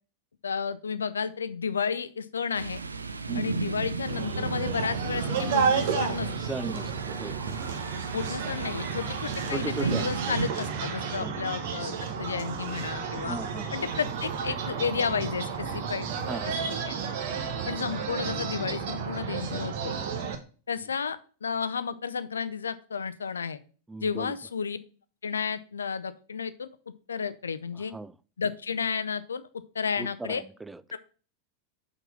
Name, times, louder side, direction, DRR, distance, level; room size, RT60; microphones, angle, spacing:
voice 1, 0.4-2.8 3.3-6.3 8.1-13.4 13.7-16.5 16.9-17.0 17.6-20.0 20.7-23.6 24.0-24.8 25.2-26.7 27.1-27.9 28.4-29.5 29.7-30.4 30.9-31.0, left 6 dB, 70° left, 13 dB, 0.5 m, -32 dB
Thunder, 2.5-10.5, right 4 dB, 80° right, 0.5 m, -34 dB
sound 1, 4.0-20.4, right 6 dB, 50° right, 1.1 m, -32 dB
voice 2, 6.4-7.4 9.5-10.4 11.2-11.4 13.1-13.7 16.3-16.6 23.9-24.4 27.9-28.1 30.0-30.8, right 3 dB, 10° right, 16 dB, 0.4 m, -37 dB
6.0 x 4.0 x 5.5 m, 0.39 s
figure-of-eight pair, 90°, 0 cm